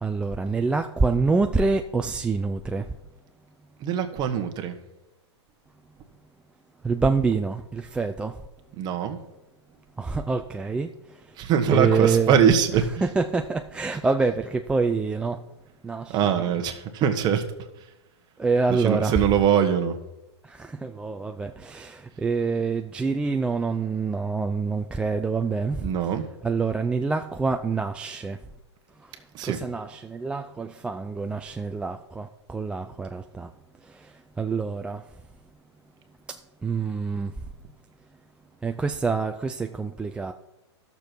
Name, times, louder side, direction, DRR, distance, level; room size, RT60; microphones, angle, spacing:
voice 1, 0.0-2.9 6.8-8.4 10.0-11.4 11.7-12.4 13.0-15.4 15.8-16.5 18.4-19.2 20.4-25.9 26.4-28.4 29.0-33.5 33.8-35.1 36.3-37.5 38.6-40.3, right 4 dB, 5° right, 0.4 m, -26 dB
voice 2, 3.8-4.7 8.8-9.2 11.4-12.9 16.1-17.4 18.8-20.0 25.8-26.2 29.3-29.6, right 8 dB, 30° right, 1.3 m, -22 dB
14.5 x 6.8 x 4.5 m
hypercardioid pair, 140°, 15 cm